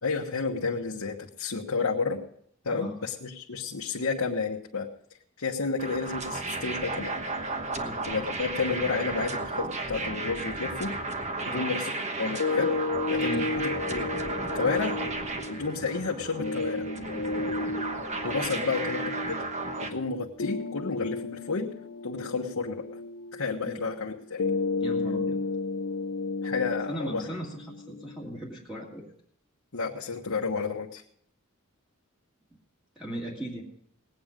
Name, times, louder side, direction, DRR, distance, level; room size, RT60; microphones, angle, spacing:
voice 1, 0.0-2.2 2.6-4.9 5.4-7.1 8.1-11.0 11.5-11.9 12.2-12.7 13.1-13.5 13.9-14.1 14.5-15.0 15.5-16.9 18.2-19.4 19.8-21.7 22.0-23.0 23.3-24.4 26.4-27.3 29.7-31.0, left 4 dB, 75° left, -1 dB, 1.2 m, -31 dB
sound 1, 5.8-19.9, right 2 dB, 30° right, 1.2 m, -34 dB
sound 2, 12.4-28.4, left 3 dB, 60° left, 0.7 m, -33 dB
voice 2, 24.8-25.4 26.9-29.1 33.0-33.6, equal, 5° right, -5 dB, 2.0 m, -37 dB
19.0 x 9.0 x 5.1 m, 0.67 s
head